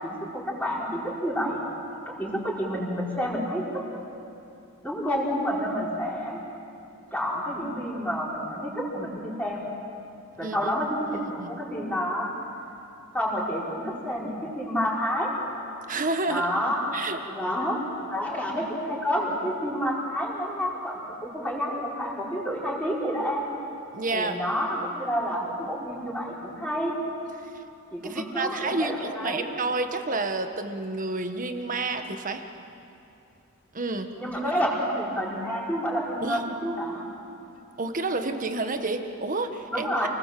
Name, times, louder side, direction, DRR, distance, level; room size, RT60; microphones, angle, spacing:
voice 1, 0.0-1.6 2.1-4.0 4.8-6.4 7.1-9.7 10.4-12.3 13.1-15.3 16.3-16.9 17.3-17.8 18.1-23.4 24.1-27.0 27.9-29.4 34.2-37.0 39.7-40.1, equal, 5° left, -5 dB, 4.8 m, -29 dB
voice 2, 11.1-11.6 15.9-16.5 16.9-17.2 23.9-24.4 27.5-27.6 28.0-32.4 33.7-34.1 36.2-36.4 37.8-40.1, right 3 dB, 40° right, 6 dB, 1.5 m, -30 dB
28.5 x 20.0 x 7.7 m, 2.7 s
head